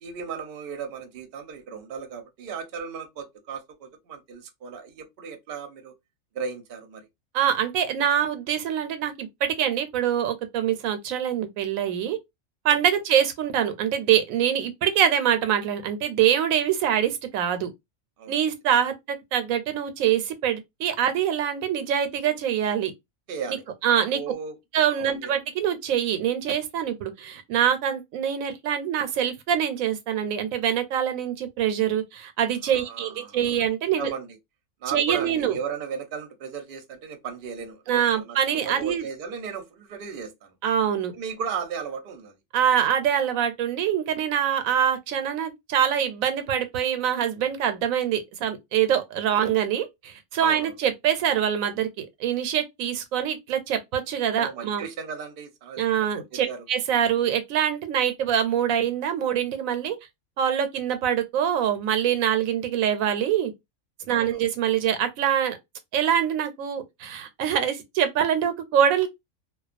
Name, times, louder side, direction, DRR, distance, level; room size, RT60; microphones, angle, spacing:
voice 1, 0.0-5.9 6.3-7.1 12.7-12.8 18.2-18.3 23.3-24.6 25.0-25.3 32.6-33.6 34.0-34.4 34.8-40.6 41.1-42.3 50.4-50.8 54.4-56.6 64.1-64.4, right 6 dB, 55° right, 0.7 m, -36 dB
voice 2, 7.3-12.2 12.6-17.7 18.3-18.9 19.3-22.9 23.8-24.2 24.7-34.1 34.9-35.6 37.9-39.0 40.6-41.1 42.5-54.8 55.8-60.0 60.4-63.5 64.1-65.6 65.9-69.1, right 9 dB, 85° right, 1.0 m, -24 dB
2.3 x 2.2 x 2.4 m
omnidirectional pair, 1.4 m